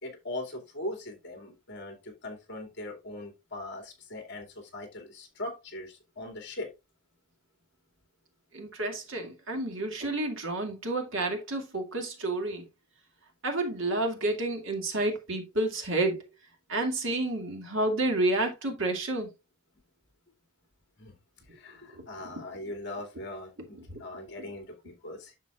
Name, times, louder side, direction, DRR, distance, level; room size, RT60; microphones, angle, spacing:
voice 1, 0.0-6.7 21.0-21.2 21.5-25.4, left 1 dB, 50° left, 2.4 m, -40 dB
voice 2, 8.5-12.6 13.4-16.2 16.7-19.3 22.2-22.4 23.9-24.0, right 2 dB, 60° right, 2.2 m, -30 dB
9.4 x 6.7 x 2.4 m
head